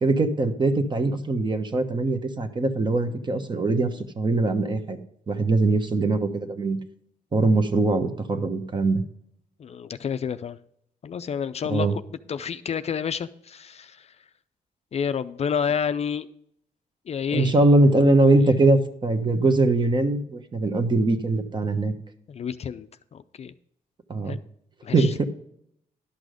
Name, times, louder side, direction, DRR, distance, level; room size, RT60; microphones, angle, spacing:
voice 1, 0.0-5.0 5.3-6.8 7.3-9.0 11.7-12.0 17.3-21.9 24.1-24.4 24.9-25.3, right 2 dB, 30° right, 1.1 m, -22 dB
voice 2, 9.6-10.6 11.0-11.9 12.3-14.1 14.9-16.3 17.1-17.5 18.4-18.6 22.3-23.5 24.3-24.4 24.8-25.1, left 7 dB, 45° left, 0.4 m, -29 dB
11.5 x 6.1 x 5.0 m
cardioid pair, 120°, 15 cm